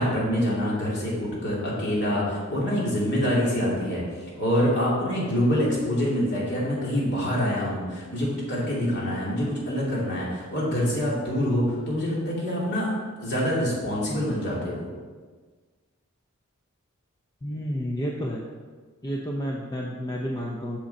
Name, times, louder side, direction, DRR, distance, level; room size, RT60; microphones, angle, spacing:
voice 1, 0.0-4.0 4.4-12.9 13.2-14.9, equal, 55° left, -5 dB, 2.6 m, -25 dB
voice 2, 17.4-18.4 19.0-20.8, equal, 20° left, -1 dB, 0.6 m, -30 dB
7.6 x 6.4 x 4.2 m, 1.4 s
head